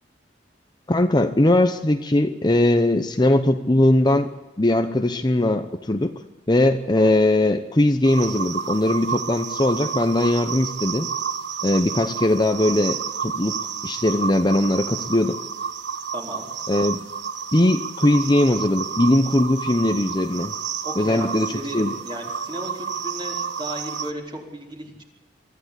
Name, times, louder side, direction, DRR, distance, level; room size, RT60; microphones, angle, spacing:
voice 1, 0.9-4.3 4.6-6.1 6.5-11.1 11.6-15.4 16.7-17.0 17.5-20.5 21.0-21.5 21.7-21.9, left 1 dB, 25° left, 8 dB, 0.8 m, -20 dB
sound 1, 8.0-24.1, right 6 dB, 85° right, 1.1 m, -30 dB
voice 2, 16.1-16.5 20.8-25.0, right 1 dB, 25° right, 0 dB, 4.1 m, -35 dB
24.0 x 14.5 x 8.3 m, 1.1 s
head